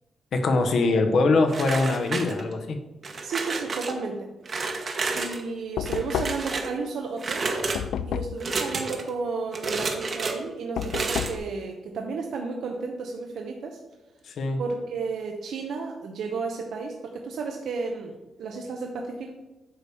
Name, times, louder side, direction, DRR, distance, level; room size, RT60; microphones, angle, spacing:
voice 1, 0.3-2.8 14.2-14.6, left 3 dB, 65° left, 6 dB, 1.1 m, -23 dB
sound 1, 1.5-2.6 3.0-3.9 4.4-5.4 5.8-6.7 7.2-7.8 8.4-9.1 9.5-10.3 10.8-11.4, right 3 dB, 45° right, 1.1 m, -30 dB
voice 2, 3.2-4.3 5.1-7.5 8.1-13.8 14.6-19.3, right 4 dB, 80° right, 2 dB, 0.9 m, -33 dB
Knock, 5.8-6.6 7.8-8.5 10.8-11.5, left 9 dB, 85° left, 0.3 m, -30 dB
8.9 x 3.5 x 6.8 m, 1.1 s
cardioid pair, 115°, 0 cm